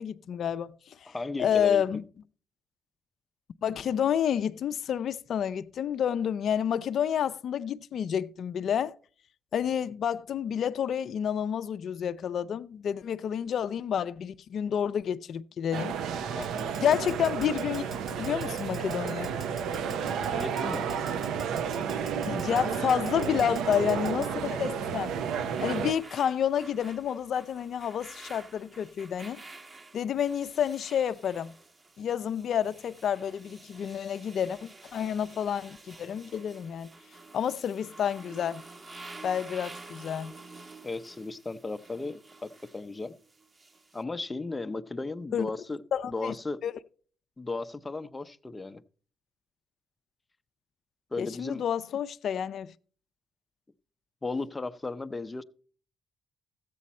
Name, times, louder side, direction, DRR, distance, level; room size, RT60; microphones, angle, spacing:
voice 1, 0.0-2.0 3.6-9.0 9.5-15.9 16.8-17.8 18.2-19.4 22.2-25.2 25.6-29.4 29.9-31.5 32.0-36.9 37.3-38.6 39.2-40.3 45.3-45.5 45.9-46.3 46.6-46.7 51.2-52.7, left 8 dB, 65° left, 0.4 m, -29 dB
voice 2, 1.1-1.8 16.3-16.7 20.3-20.9 40.8-43.2 43.9-45.8 46.1-46.6 47.4-48.8 51.1-51.6 54.2-55.4, left 3 dB, 20° left, 0.6 m, -35 dB
sound 1, 15.7-25.9, right 7 dB, 85° right, 0.6 m, -32 dB
Keyboard (musical), 16.4-24.3, right 5 dB, 45° right, 2.3 m, -43 dB
sound 2, 24.8-44.0, right 3 dB, 30° right, 1.1 m, -50 dB
14.0 x 8.3 x 4.2 m
cardioid pair, 90°, 0 cm